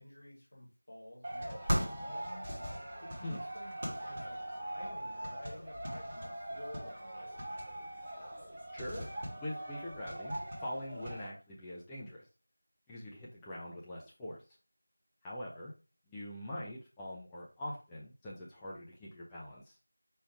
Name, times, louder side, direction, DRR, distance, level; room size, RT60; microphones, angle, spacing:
voice 1, 0.0-2.5 2.9-7.9, left 1 dB, 40° left, -2 dB, 1.2 m, -52 dB
sound 1, 1.2-11.3, equal, 15° right, 0.8 m, -40 dB
voice 2, 8.7-9.1 9.4-12.3 12.9-14.4 15.2-15.7 16.1-19.8, left 1 dB, 5° left, -6 dB, 0.3 m, -43 dB
4.6 x 2.3 x 4.6 m, 0.33 s
figure-of-eight pair, 175°, 0 cm